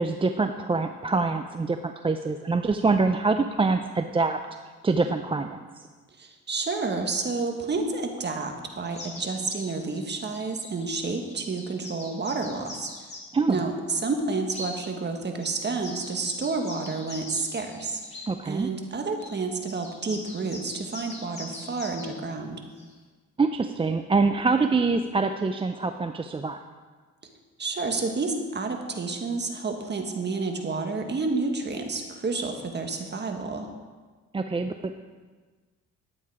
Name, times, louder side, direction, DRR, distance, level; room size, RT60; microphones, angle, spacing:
voice 1, 0.0-4.4 4.8-5.9 13.3-13.6 18.3-18.7 23.4-26.6 34.3-34.9, right 4 dB, 20° right, 8 dB, 0.5 m, -25 dB
voice 2, 6.2-12.9 13.5-22.6 27.6-33.7, right 3 dB, 35° right, 4 dB, 1.6 m, -30 dB
sound 1, 8.8-13.4 14.5-14.7 15.4-18.3 19.2-19.4 19.7-22.1 22.8-22.9, left 2 dB, 20° left, 2.8 m, -42 dB
11.5 x 8.7 x 4.8 m, 1.4 s
cardioid pair, 90°, 30 cm